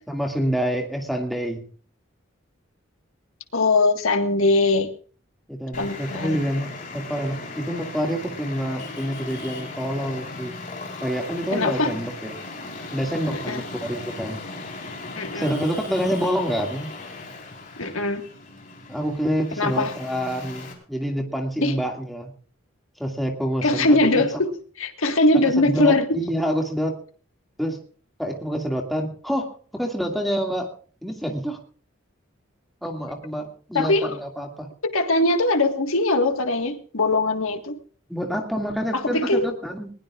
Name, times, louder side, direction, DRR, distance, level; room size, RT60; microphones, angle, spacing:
voice 1, 0.1-1.6 5.5-10.5 11.0-12.4 12.9-14.4 15.3-16.9 18.9-22.3 23.0-24.2 25.3-27.0 27.6-27.8 28.2-30.7 31.0-31.6 32.8-34.7 38.1-39.9, equal, ahead, 1 dB, 2.3 m, -27 dB
voice 2, 3.5-4.9 5.8-6.4 11.5-11.9 13.3-13.6 15.2-15.6 17.8-18.2 19.6-19.9 21.6-21.7 23.6-24.5 24.8-26.2 33.7-34.2 34.8-37.8 38.9-39.5, left 2 dB, 85° left, 6 dB, 1.7 m, -21 dB
Traffic noise roadway noise, 5.7-20.7, left 3 dB, 40° left, 4.3 m, -37 dB
20.5 x 20.0 x 2.5 m, 0.43 s
head